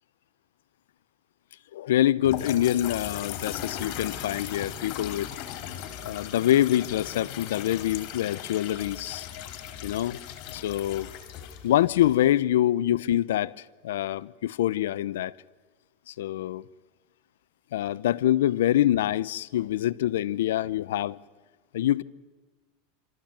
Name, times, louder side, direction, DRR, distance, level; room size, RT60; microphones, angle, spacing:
voice 1, 1.7-5.3 6.0-9.3 9.8-10.2 10.5-11.1 11.6-13.6 13.8-15.3 16.1-16.6 17.7-21.2 21.7-22.0, left 12 dB, 85° left, 0.6 m, -25 dB
sound 1, 2.2-12.4, left 10 dB, 50° left, 2.8 m, -38 dB
27.5 x 13.5 x 8.8 m
supercardioid pair, 145°, 0 cm